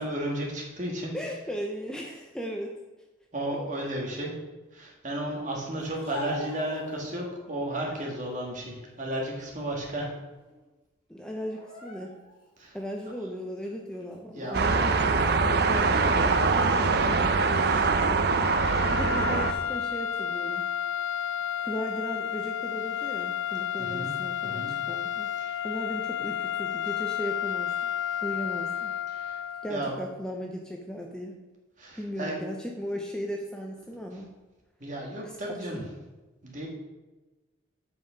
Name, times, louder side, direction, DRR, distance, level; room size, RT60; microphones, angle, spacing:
voice 1, 0.0-1.1 3.3-4.3 4.7-10.1 12.6-12.8 14.4-14.6 17.5-18.0 23.8-24.1 24.4-24.7 25.4-25.6 29.1-29.4 29.7-29.9 31.8-32.4 34.8-35.8 36.4-36.7, right 1 dB, 40° right, -1 dB, 1.8 m, -33 dB
voice 2, 1.1-2.8 3.5-3.6 11.1-12.2 12.7-16.9 17.3-20.6 21.2-21.3 21.6-25.3 25.6-27.9 28.2-28.9 29.6-31.4 32.0-34.3 35.2-35.9, equal, 5° left, 1 dB, 0.6 m, -37 dB
Speech, 5.8-7.4 7.9-8.5 9.0-10.2 10.4-10.6 11.4-12.4 13.0-13.1 13.9-14.2 14.9-15.6 16.5-17.2, left 1 dB, 25° left, 2.7 m, -45 dB
sound 1, 14.5-19.5, right 4 dB, 55° right, 0.5 m, -23 dB
sound 2, 18.3-29.9, left 9 dB, 85° left, 0.5 m, -31 dB
7.9 x 5.6 x 5.0 m, 1.2 s
head